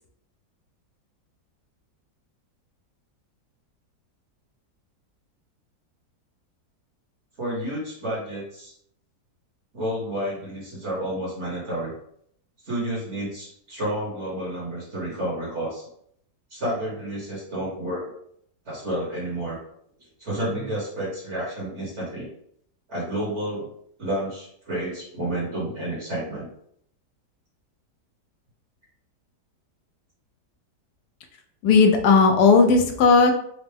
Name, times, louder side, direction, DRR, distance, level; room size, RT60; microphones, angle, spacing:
voice 1, 7.4-8.7 9.7-11.9 12.6-15.9 16.5-18.1 18.6-19.6 20.2-22.3 22.9-23.7 24.0-26.5 32.8-32.9, right 1 dB, 50° right, -5 dB, 1.3 m, -30 dB
voice 2, 31.6-33.3, left 4 dB, 75° left, 4 dB, 1.1 m, -16 dB
4.4 x 2.0 x 3.3 m, 0.68 s
omnidirectional pair, 1.8 m